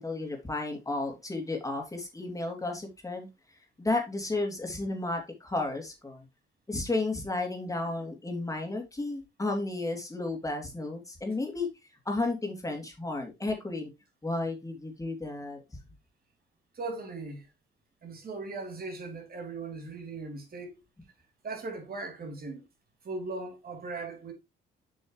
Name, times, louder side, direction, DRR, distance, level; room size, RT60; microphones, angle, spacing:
voice 1, 0.0-3.3 3.8-6.2 6.7-11.7 12.0-13.9 14.2-15.6, left 2 dB, 15° left, 2.8 m, -33 dB
voice 2, 16.7-17.5 18.0-20.8 21.4-22.6 23.0-24.3, right 3 dB, 50° right, 3.1 m, -38 dB
7.7 x 6.1 x 3.1 m
cardioid pair, 90°, 20 cm